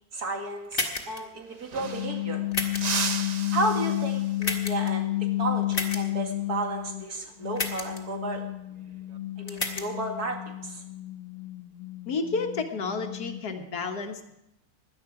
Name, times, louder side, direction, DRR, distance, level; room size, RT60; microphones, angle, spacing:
voice 1, 0.1-2.4 3.5-5.1 5.4-8.4 9.4-10.8, right 2 dB, 80° right, 2 dB, 2.6 m, -32 dB
sound 1, 0.7-1.2 2.5-3.0 4.4-4.9 5.7-6.0 7.6-8.0 9.5-9.9, left 3 dB, 35° left, 1.7 m, -30 dB
sound 2, 1.1-1.2 1.4-2.3 2.7-4.5 7.0-7.3 8.7-9.2, right 5 dB, 50° right, 0.5 m, -35 dB
sound 3, 1.8-7.1 7.4-13.6, left 16 dB, 60° left, 1.0 m, -32 dB
voice 2, 12.1-14.3, left 4 dB, 85° left, 5 dB, 1.9 m, -31 dB
17.0 x 11.0 x 4.8 m, 0.85 s
omnidirectional pair, 1.6 m